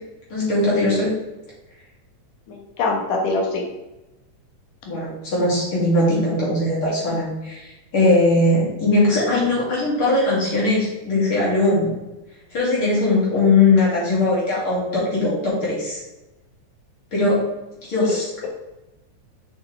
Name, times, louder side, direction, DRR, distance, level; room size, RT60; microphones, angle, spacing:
voice 1, 0.3-1.1 4.8-11.9 12.5-16.0 17.1-17.4 17.8-18.5, left 2 dB, 40° left, -6 dB, 3.2 m, -20 dB
voice 2, 2.5-3.6 18.0-18.2, left 3 dB, 75° left, 0 dB, 2.9 m, -23 dB
7.1 x 6.5 x 3.4 m, 1.0 s
omnidirectional pair, 3.7 m